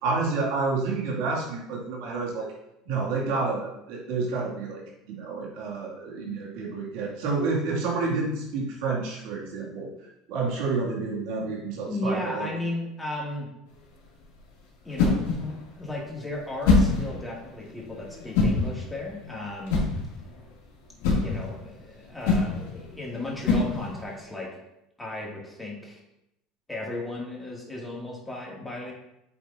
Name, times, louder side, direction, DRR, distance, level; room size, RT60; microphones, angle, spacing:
voice 1, 0.0-2.5 2.9-9.9 10.3-12.5, right 4 dB, 70° right, -3 dB, 2.4 m, -29 dB
voice 2, 11.9-13.5 14.8-19.9 21.2-24.6 25.0-26.0 26.7-28.9, left 2 dB, 10° left, -3 dB, 2.5 m, -35 dB
sound 1, 13.7-24.2, left 3 dB, 80° left, 2.6 m, -27 dB
8.6 x 4.9 x 2.8 m, 0.84 s
supercardioid pair, 95°, 0 cm